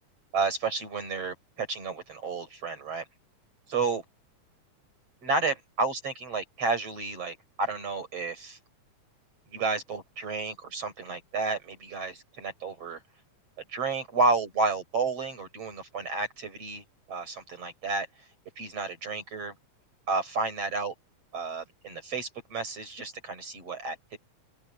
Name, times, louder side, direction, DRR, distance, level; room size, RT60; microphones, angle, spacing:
voice 1, 0.3-3.1 3.7-4.0 5.2-8.6 9.5-13.0 13.7-18.1 18.6-19.5 20.1-20.9 21.3-24.2, right 3 dB, 50° right, 5.9 m, -31 dB
open air
omnidirectional pair, 3.6 m